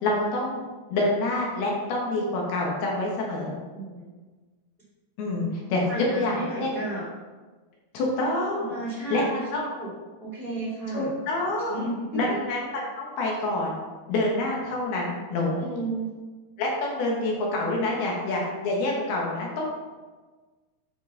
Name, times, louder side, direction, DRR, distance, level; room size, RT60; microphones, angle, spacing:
voice 1, 0.0-0.6 0.9-3.5 5.2-6.7 7.9-8.8 9.1-9.7 10.9-13.8 14.1-15.6 16.6-19.7, left 2 dB, 70° left, -2 dB, 3.0 m, -27 dB
voice 2, 3.7-4.1 5.9-7.1 8.6-9.9 10.2-11.1 11.7-12.2 15.6-16.1, right 3 dB, 20° left, -7 dB, 1.9 m, -33 dB
10.0 x 5.6 x 3.8 m, 1.3 s
omnidirectional pair, 5.2 m